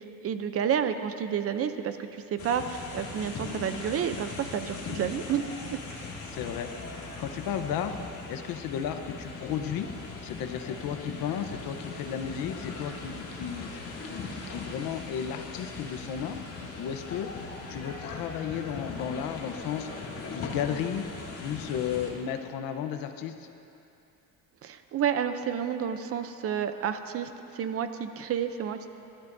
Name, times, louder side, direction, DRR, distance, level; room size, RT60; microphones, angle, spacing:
voice 1, 0.0-5.4 24.6-28.9, right 8 dB, 45° right, 9 dB, 0.6 m, -30 dB
sound 1, 2.4-22.1, left 3 dB, 40° left, 2.3 m, -39 dB
voice 2, 6.3-8.0 8.3-9.9 10.2-16.4 16.8-17.3 17.7-20.0 20.3-21.0 21.4-23.5, left 8 dB, 80° left, 7 dB, 1.0 m, -34 dB
27.0 x 12.5 x 2.7 m, 2.8 s
cardioid pair, 150°, 34 cm